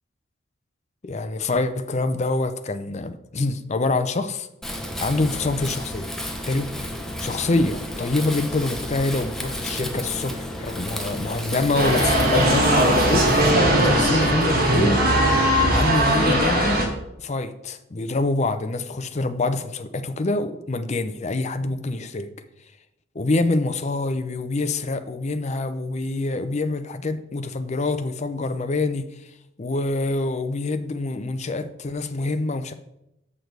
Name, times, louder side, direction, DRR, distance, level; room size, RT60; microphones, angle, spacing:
voice 1, 1.0-4.5 5.0-6.1 6.4-6.7 7.2-15.0 15.7-16.8 17.2-22.3 23.1-29.1 29.6-32.7, left 2 dB, 35° left, 0.6 m, -26 dB
Wind, 4.6-13.5, left 1 dB, ahead, 0.8 m, -32 dB
sound 1, 11.7-16.9, right 1 dB, 50° right, 1.7 m, -19 dB
6.7 x 6.1 x 4.6 m
head